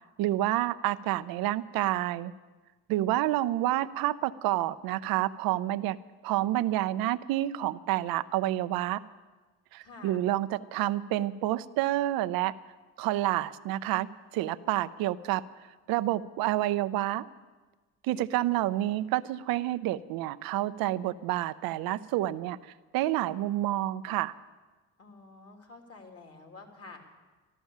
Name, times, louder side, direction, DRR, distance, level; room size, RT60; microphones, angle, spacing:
voice 1, 0.2-2.3 2.9-6.0 6.2-9.0 9.7-12.5 13.0-14.1 14.3-15.4 15.9-17.3 18.0-22.6 22.9-24.3, right 15 dB, 80° right, 14 dB, 0.6 m, -29 dB
voice 2, 9.8-10.3 25.0-27.0, left 3 dB, 40° left, 4 dB, 3.3 m, -49 dB
13.5 x 13.0 x 7.3 m, 1.3 s
supercardioid pair, 70°, 35 cm